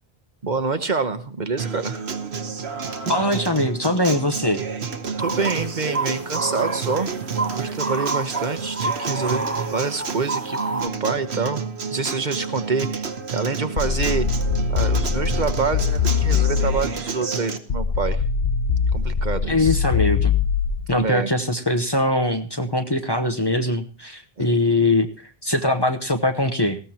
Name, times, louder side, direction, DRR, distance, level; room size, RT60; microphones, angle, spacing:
voice 1, 0.4-2.0 5.2-7.1 7.5-11.6 11.9-14.3 14.7-18.2 18.9-19.8 20.9-21.3 24.4-24.5, right 4 dB, 50° right, 9 dB, 1.1 m, -26 dB
Acoustic guitar, 1.6-17.6, right 5 dB, 90° right, 1.4 m, -30 dB
voice 2, 3.1-4.6 19.5-20.3 20.9-26.8, left 2 dB, 25° left, 5 dB, 1.0 m, -22 dB
sound 1, 5.2-10.9, right 3 dB, 15° right, 0.8 m, -29 dB
sound 2, 13.8-17.0 17.7-21.0, left 6 dB, 65° left, 1.0 m, -22 dB
19.0 x 15.5 x 2.9 m, 0.37 s
omnidirectional pair, 1.0 m